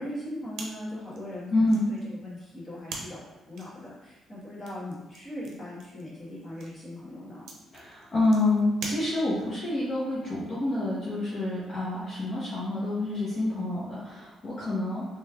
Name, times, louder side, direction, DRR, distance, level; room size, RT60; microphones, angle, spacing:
voice 1, 0.0-3.2 3.5-7.5, left 1 dB, 30° left, -7 dB, 1.4 m, -39 dB
sound 1, 0.5-9.6, right 3 dB, 75° right, 0.6 m, -45 dB
voice 2, 1.5-1.8 7.7-15.1, left 2 dB, 45° left, -9 dB, 0.8 m, -27 dB
3.2 x 3.0 x 2.3 m, 1.1 s
cardioid pair, 90°, 0 cm